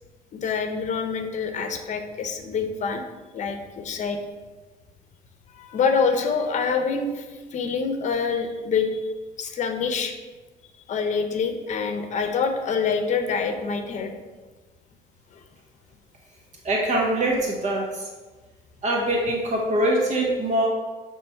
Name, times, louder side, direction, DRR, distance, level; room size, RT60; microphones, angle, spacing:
voice 1, 0.3-3.0 3.3-4.2 5.6-7.2 7.5-8.9 9.4-10.1 10.9-14.1, left 5 dB, 45° left, 6 dB, 0.7 m, -26 dB
voice 2, 16.6-18.1 18.8-20.7, right 1 dB, 45° right, -1 dB, 0.9 m, -23 dB
6.6 x 3.2 x 4.5 m, 1.3 s
cardioid pair, 110°, 17 cm